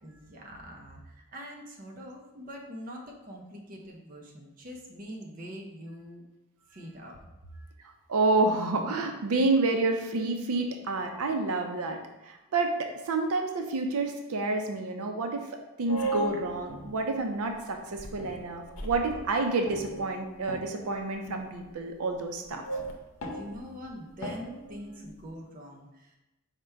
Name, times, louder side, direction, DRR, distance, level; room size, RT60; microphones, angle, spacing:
voice 1, 0.0-6.2 6.7-7.3 22.2-22.3 23.2-26.2, equal, 40° right, 0 dB, 0.6 m, -44 dB
voice 2, 8.1-12.7 13.1-15.5 15.8-22.6, right 3 dB, 80° right, 4 dB, 0.5 m, -29 dB
sound 1, 15.9-17.4 18.0-19.3 19.7-21.0 21.3-21.7 22.5-25.3, right 2 dB, 70° left, 0.7 m, -37 dB
5.0 x 2.2 x 4.5 m, 0.96 s
head